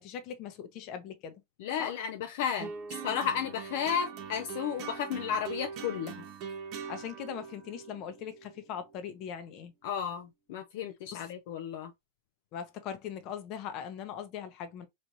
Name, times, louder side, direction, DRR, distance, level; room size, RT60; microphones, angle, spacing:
voice 1, 0.0-1.3 1.8-1.9 6.9-9.7 11.1-11.3 12.5-14.9, left 8 dB, 40° left, 0.8 m, -40 dB
voice 2, 1.6-6.2 9.8-11.9, left 8 dB, 60° left, 0.5 m, -33 dB
sound 1, 2.6-9.1, right 6 dB, 40° right, 1.0 m, -42 dB
4.2 x 3.1 x 2.6 m
supercardioid pair, 150°, 0 cm